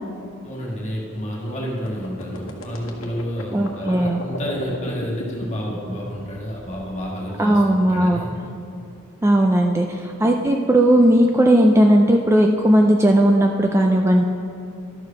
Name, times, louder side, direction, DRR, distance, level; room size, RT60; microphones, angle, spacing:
voice 1, 0.4-8.3, equal, 35° left, -4 dB, 1.8 m, -30 dB
sound 1, 1.8-7.0, left 1 dB, 70° left, 1.2 m, -34 dB
voice 2, 3.5-4.2 7.4-8.3 9.2-14.2, right 1 dB, 15° right, 2 dB, 0.4 m, -17 dB
12.0 x 4.8 x 5.8 m, 2.6 s
head